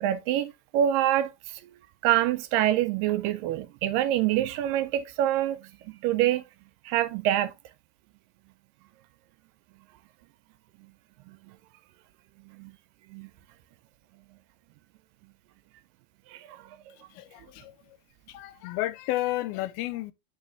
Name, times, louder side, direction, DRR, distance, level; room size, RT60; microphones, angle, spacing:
voice 1, 0.0-1.7 2.0-6.4 6.8-7.5 12.5-12.7 13.1-13.3 16.3-16.6, right 12 dB, 80° right, 2.0 m, -26 dB
voice 2, 17.1-17.8 18.3-20.1, left 16 dB, 90° left, 2.5 m, -32 dB
8.3 x 3.5 x 3.3 m
omnidirectional pair, 4.2 m